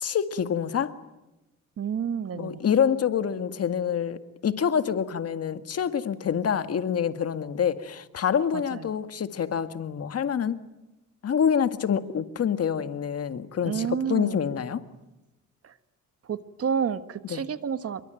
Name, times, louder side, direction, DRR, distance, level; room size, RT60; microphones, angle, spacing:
voice 1, 0.0-0.9 2.3-10.6 11.2-14.8 17.3-17.4, left 8 dB, 55° left, 1.9 m, -26 dB
voice 2, 1.8-2.6 8.5-8.8 13.6-14.4 16.3-18.0, right 7 dB, 50° right, 1.5 m, -29 dB
28.0 x 23.5 x 9.1 m
cardioid pair, 90°, 30 cm